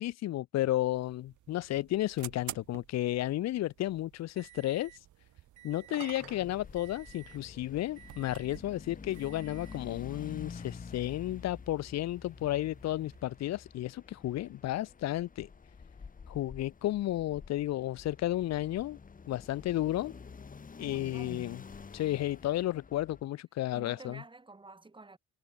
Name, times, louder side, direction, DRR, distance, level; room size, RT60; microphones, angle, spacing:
voice 1, 0.0-4.9 5.6-15.5 16.3-19.0 19.3-20.1 20.8-21.6 21.9-24.2, left 14 dB, 55° left, 0.6 m, -33 dB
sound 1, 1.0-13.4, right 13 dB, 60° right, 1.7 m, -52 dB
sound 2, 1.1-2.9 5.7-7.5 8.4-8.5 12.2-13.8, right 20 dB, 85° right, 1.3 m, -53 dB
sound 3, 6.2-23.2, left 5 dB, 25° left, 1.5 m, -49 dB
voice 2, 20.8-21.6 23.7-25.2, right 3 dB, 15° right, 1.9 m, -50 dB
cardioid pair, 100°, 33 cm